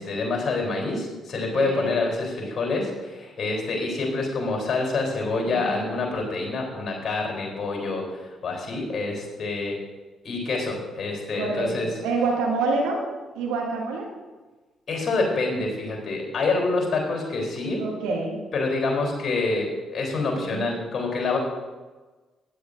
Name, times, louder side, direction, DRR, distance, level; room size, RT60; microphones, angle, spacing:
voice 1, 0.0-9.8 10.2-11.9 14.9-17.8 18.5-21.4, left 3 dB, 45° left, 0 dB, 3.6 m, -27 dB
voice 2, 1.5-1.9 5.5-5.9 11.3-13.0 13.4-14.1 17.8-18.4 20.3-20.7, right 3 dB, 65° right, -1 dB, 1.9 m, -27 dB
15.5 x 10.0 x 2.6 m, 1.3 s
figure-of-eight pair, 40°, 0 cm